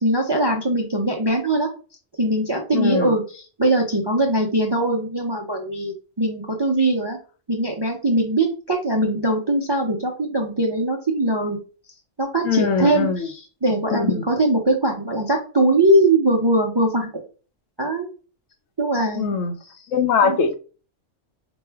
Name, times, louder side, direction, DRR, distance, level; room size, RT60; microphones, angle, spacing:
voice 1, 0.0-1.7 2.2-7.2 7.5-11.6 12.2-17.1 17.8-18.1 18.8-19.4 20.2-20.4, right 1 dB, 40° right, 0.3 m, -21 dB
voice 2, 2.7-3.1 12.4-13.3 13.9-14.1 19.1-19.5 19.9-20.5, left 6 dB, 85° left, 1.0 m, -21 dB
5.1 x 2.1 x 3.3 m
omnidirectional pair, 1.3 m